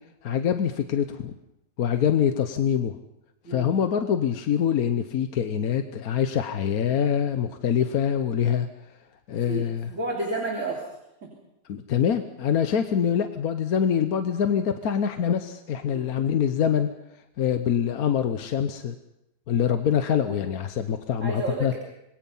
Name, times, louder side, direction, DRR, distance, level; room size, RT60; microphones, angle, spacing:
voice 1, 0.2-1.3 1.8-3.0 3.5-8.7 9.3-9.9 11.7-16.9 17.4-18.9 19.5-21.8, left 8 dB, 65° left, 8 dB, 1.4 m, -24 dB
voice 2, 9.4-10.9 11.2-11.3 15.9-16.1 21.2-21.8, right 2 dB, 50° right, -1 dB, 3.6 m, -31 dB
26.5 x 21.5 x 5.5 m, 0.84 s
omnidirectional pair, 1.7 m